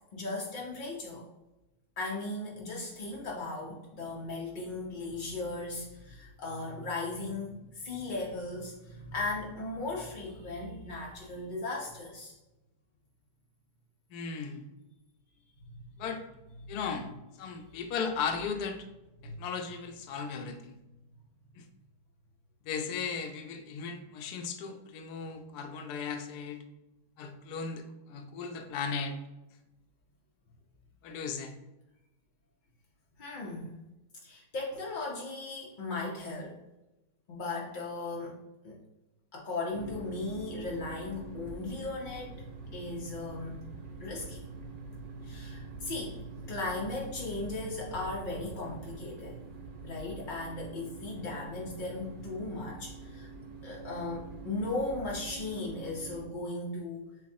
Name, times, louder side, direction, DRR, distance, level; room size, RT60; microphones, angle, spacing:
voice 1, 0.1-1.2 2.0-12.4 15.7-15.8 16.6-16.7 19.2-19.3 33.2-33.8 34.2-36.6 37.3-38.4 38.6-38.8 39.3-42.3 42.7-43.7 44.0-44.4 45.2-46.2 46.5-49.4 49.8-53.3 53.6-57.1, left 2 dB, 55° left, -3 dB, 0.5 m, -37 dB
voice 2, 14.1-14.7 16.0-16.2 16.7-17.1 17.4-18.8 19.2-20.7 21.6-21.7 22.6-26.6 27.2-29.2 31.0-31.5, left 5 dB, 80° left, 5 dB, 1.1 m, -36 dB
sound 1, 39.7-56.3, right 4 dB, 60° right, 0.5 m, -45 dB
6.8 x 2.3 x 2.6 m, 0.98 s
omnidirectional pair, 1.7 m